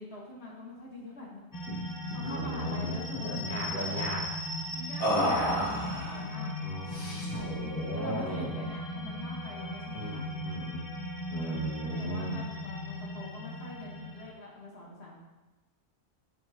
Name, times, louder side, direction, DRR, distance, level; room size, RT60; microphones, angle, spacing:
voice 1, 0.0-1.4 1.8-4.0 4.7-6.5 7.9-10.3 11.3-15.2, left 2 dB, 55° left, -5 dB, 1.7 m, -44 dB
sound 1, 1.5-14.3, left 1 dB, 20° left, 0.7 m, -37 dB
sound 2, 1.7-1.9 2.1-2.3 2.7-3.4 5.0-6.2 6.9-7.5, equal, 80° left, 3.0 m, -32 dB
voice 2, 2.2-3.0 3.2-4.2 5.1-5.7 6.6-8.7 9.9-10.8 11.3-12.4, right 1 dB, 10° right, -7 dB, 1.7 m, -37 dB
11.5 x 5.1 x 2.9 m, 1.1 s
omnidirectional pair, 1.4 m